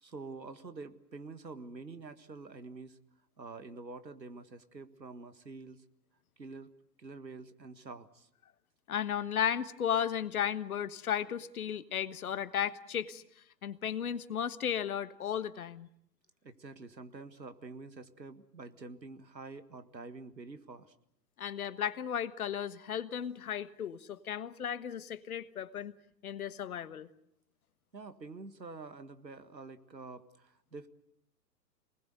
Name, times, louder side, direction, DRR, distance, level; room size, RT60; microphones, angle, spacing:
voice 1, 0.0-3.0 3.4-5.8 6.4-6.7 7.0-8.3 16.4-20.9 27.9-30.9, right 3 dB, 80° right, 11 dB, 1.8 m, -47 dB
voice 2, 8.9-13.2 13.6-15.9 21.4-25.9 26.2-27.1, left 9 dB, 60° left, 14 dB, 1.4 m, -35 dB
27.5 x 20.0 x 8.0 m, 0.74 s
figure-of-eight pair, 110°, 50 cm